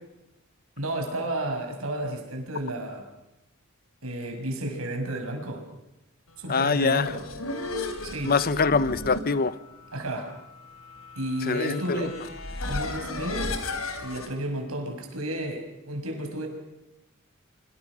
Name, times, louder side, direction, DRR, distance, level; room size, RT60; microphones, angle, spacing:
voice 1, 0.8-3.0 4.0-5.6 6.4-7.2 8.0-8.4 9.9-10.3 11.2-12.2 12.6-13.6 14.0-16.5, right 1 dB, 80° right, 4 dB, 6.3 m, -32 dB
voice 2, 6.5-7.2 8.2-9.6 11.4-12.1, left 4 dB, 45° left, 16 dB, 0.9 m, -24 dB
sound 1, 6.9-14.3, left 2 dB, 80° left, 3.6 m, -35 dB
25.5 x 25.5 x 6.3 m, 0.91 s
head